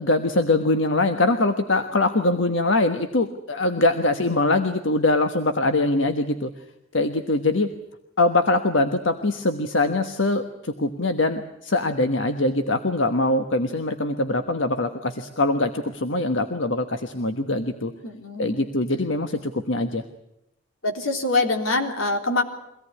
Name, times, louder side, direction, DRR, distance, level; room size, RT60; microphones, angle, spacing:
voice 1, 0.0-6.5 6.9-7.7 8.2-17.9 18.4-20.0, left 2 dB, 70° left, 7 dB, 1.3 m, -23 dB
voice 2, 18.0-18.7 20.8-22.4, left 2 dB, 90° left, 5 dB, 3.6 m, -24 dB
24.0 x 18.0 x 9.7 m, 0.83 s
head